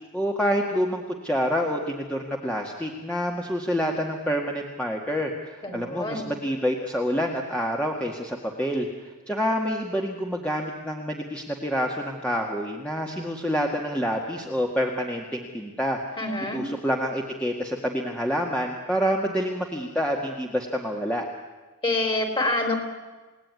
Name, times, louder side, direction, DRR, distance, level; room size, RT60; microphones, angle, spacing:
voice 1, 0.1-8.9 9.3-16.0 16.5-21.3, equal, 5° left, 0 dB, 2.0 m, -27 dB
voice 2, 5.6-6.3 16.2-16.7 21.8-22.8, left 2 dB, 25° left, 6 dB, 4.2 m, -26 dB
29.5 x 18.0 x 9.8 m, 1.3 s
head